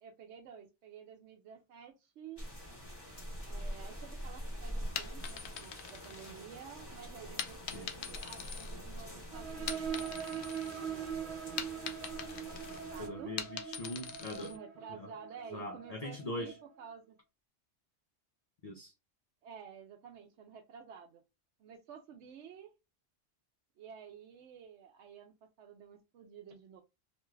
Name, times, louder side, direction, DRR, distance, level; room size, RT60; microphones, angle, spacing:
voice 1, 0.0-2.4 3.5-11.8 12.7-13.3 14.4-17.2 19.4-21.2 21.6-22.7 23.8-26.8, right 7 dB, 85° right, 0.9 m, -51 dB
sound 1, 2.4-13.1, equal, 20° left, 1.1 m, -45 dB
sound 2, 4.9-6.7 7.4-9.2 9.5-10.8 11.1-14.6, left 8 dB, 75° left, 0.8 m, -43 dB
sound 3, 9.3-16.6, right 8 dB, 55° right, 0.7 m, -42 dB
voice 2, 13.0-14.5 14.9-15.1 15.5-16.6 18.6-18.9, left 1 dB, 50° left, 0.5 m, -42 dB
2.9 x 2.3 x 3.1 m
omnidirectional pair, 1.2 m